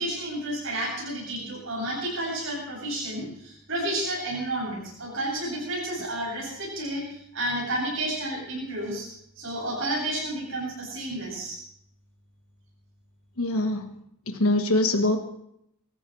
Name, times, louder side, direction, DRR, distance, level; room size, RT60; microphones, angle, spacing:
voice 1, 0.0-9.1 9.4-11.6, right 1 dB, 65° right, -6 dB, 7.8 m, -31 dB
voice 2, 13.4-13.9 14.3-15.2, left 1 dB, 85° left, 4 dB, 1.4 m, -23 dB
24.5 x 14.5 x 3.3 m, 0.73 s
head